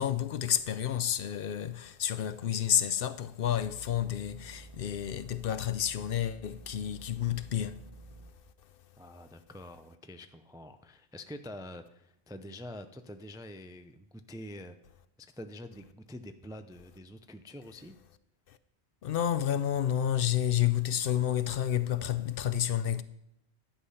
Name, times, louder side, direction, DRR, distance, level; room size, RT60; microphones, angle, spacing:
voice 1, 0.0-7.9 18.5-18.6 19.0-23.0, left 10 dB, 65° left, 0.7 m, -30 dB
sound 1, 3.4-8.3, right 2 dB, 30° right, 0.9 m, -51 dB
voice 2, 9.0-14.8 15.2-18.0, left 1 dB, 5° right, 0.3 m, -46 dB
11.5 x 8.4 x 5.6 m
omnidirectional pair, 1.1 m